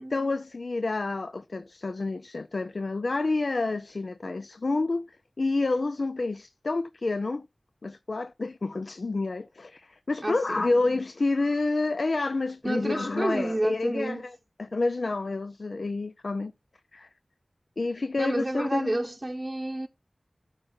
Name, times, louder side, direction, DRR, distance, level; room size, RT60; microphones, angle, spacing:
voice 1, 0.1-5.1 5.4-7.4 7.8-16.5 16.9-17.1 17.8-19.0, left 3 dB, 75° left, 0.5 m, -29 dB
voice 2, 10.2-10.7 12.6-14.2 18.2-19.9, right 1 dB, 30° right, 0.8 m, -30 dB
13.0 x 5.7 x 3.9 m
wide cardioid pair, 50°, 0 cm